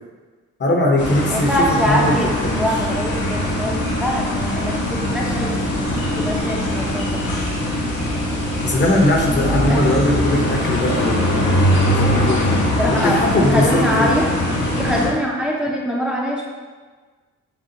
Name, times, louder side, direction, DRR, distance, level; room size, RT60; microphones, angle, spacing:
voice 1, 0.6-2.7 8.6-12.6 13.0-14.1, left 1 dB, 40° left, 0 dB, 1.0 m, -20 dB
sound 1, 1.0-15.1, left 1 dB, 70° left, 1.2 m, -21 dB
voice 2, 1.3-5.5 6.2-7.2 9.3-10.1 12.8-14.3 14.7-16.4, equal, 5° right, -3 dB, 0.7 m, -23 dB
7.1 x 2.4 x 2.9 m, 1.4 s
cardioid pair, 85°, 29 cm